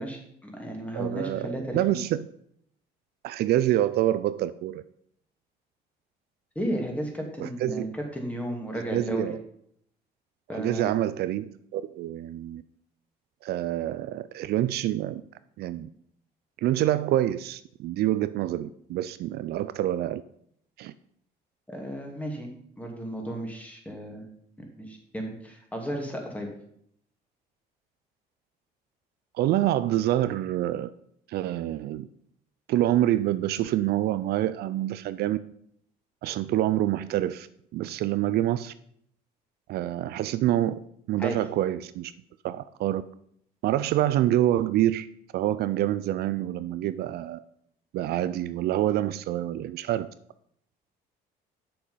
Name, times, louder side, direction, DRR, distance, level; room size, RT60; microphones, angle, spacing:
voice 1, 0.0-2.0 6.6-9.4 10.5-10.9 21.7-22.5 22.8-24.2 24.6-26.5 41.2-41.4, right 1 dB, 10° left, 1 dB, 2.4 m, -34 dB
voice 2, 0.9-2.3 3.2-4.8 7.4-7.9 8.7-9.4 10.5-12.6 13.4-15.2 15.6-15.9 16.6-20.2 20.8-20.9 29.3-30.9 31.3-32.1 32.7-35.4 36.2-37.5 37.7-38.7 39.7-40.8 41.1-42.1 42.4-43.0 43.6-45.1 45.3-47.4 47.9-50.1, right 13 dB, 70° right, 14 dB, 0.5 m, -26 dB
7.6 x 6.8 x 5.6 m, 0.68 s
cardioid pair, 110°, 17 cm